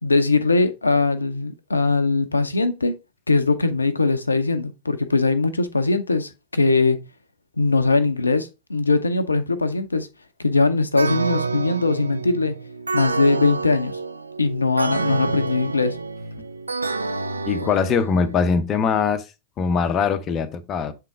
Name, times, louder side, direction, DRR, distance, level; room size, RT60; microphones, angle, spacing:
voice 1, 0.0-2.9 3.3-7.0 7.6-10.1 10.4-12.5 12.9-14.0 14.4-16.0, left 3 dB, 80° left, 0.6 m, -21 dB
sound 1, 11.0-18.6, right 3 dB, 80° right, 0.4 m, -28 dB
voice 2, 17.5-19.2 19.6-20.9, left 6 dB, 30° left, 0.7 m, -22 dB
7.4 x 3.8 x 3.5 m
figure-of-eight pair, 90°, 0 cm